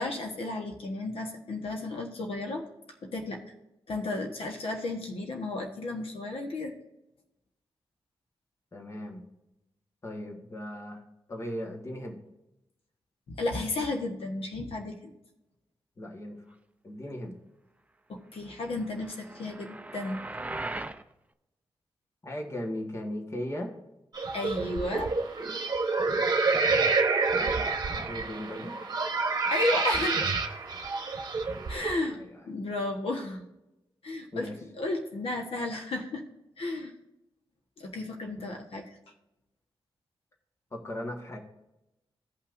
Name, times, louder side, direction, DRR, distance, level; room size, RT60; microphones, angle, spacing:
voice 1, 0.0-2.6 3.0-3.4 3.9-6.7 13.3-15.1 18.1-20.2 24.3-25.1 29.5-30.3 31.7-32.2 32.5-33.4 34.0-36.2 36.6-36.9 37.8-39.0, left 2 dB, 85° left, 3 dB, 1.3 m, -33 dB
voice 2, 8.7-9.2 10.0-11.0 11.3-12.2 16.0-16.4 16.8-17.3 22.2-23.7 27.9-28.7 32.1-32.3 34.3-34.6 38.4-38.5 40.7-41.4, left 1 dB, 30° left, 2 dB, 1.5 m, -37 dB
sound 1, 18.8-21.0, right 2 dB, 15° right, 0.5 m, -39 dB
sound 2, 24.1-32.0, right 4 dB, 45° right, 1.1 m, -28 dB
16.5 x 5.7 x 2.6 m, 0.91 s
wide cardioid pair, 140°, 9 cm